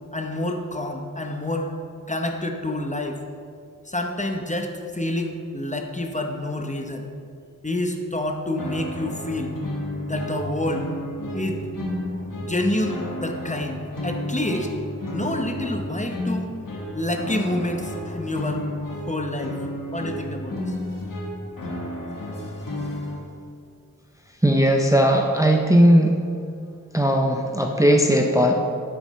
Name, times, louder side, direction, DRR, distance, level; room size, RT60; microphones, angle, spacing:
voice 1, 0.1-1.7 2.1-3.2 3.9-7.0 7.6-9.5 10.1-10.9 11.3-11.6 12.4-14.7 15.1-16.5 16.9-18.6 19.1-19.6 19.9-20.7, left 1 dB, 20° left, 3 dB, 0.8 m, -28 dB
sound 1, 8.6-23.2, left 1 dB, 80° left, 1.4 m, -32 dB
voice 2, 24.4-26.2 26.9-28.7, equal, 10° right, 2 dB, 0.6 m, -18 dB
9.4 x 8.8 x 3.2 m, 2.3 s
wide cardioid pair, 65°, 32 cm